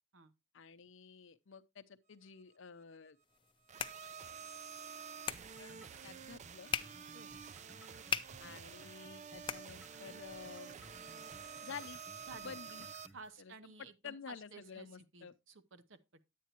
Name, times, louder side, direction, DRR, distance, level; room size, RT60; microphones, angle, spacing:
voice 1, 0.5-3.2 5.5-5.8 6.0-6.7 8.4-10.8 11.6-12.0 12.4-12.8 13.4-13.5 14.0-15.3, left 6 dB, 60° left, 0.7 m, -50 dB
sound 1, 3.2-10.3, left 7 dB, 25° left, 0.5 m, -44 dB
sound 2, 3.7-13.1, right 7 dB, 35° right, 0.4 m, -49 dB
sound 3, 5.3-13.3, equal, 5° right, 0.8 m, -60 dB
voice 2, 12.2-12.6 13.1-16.2, right 3 dB, 65° right, 0.9 m, -54 dB
10.0 x 8.5 x 2.9 m
head